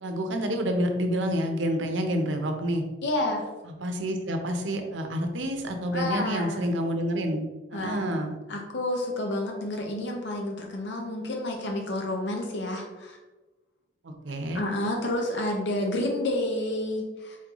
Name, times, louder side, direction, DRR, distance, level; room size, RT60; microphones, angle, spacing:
voice 1, 0.0-2.8 3.7-8.4 14.0-14.6, equal, 75° right, 4 dB, 0.7 m, -28 dB
voice 2, 3.0-3.5 5.9-6.6 7.7-8.1 8.5-13.2 14.5-17.4, left 1 dB, 65° left, 1 dB, 0.7 m, -30 dB
4.2 x 3.8 x 3.0 m, 1.2 s
head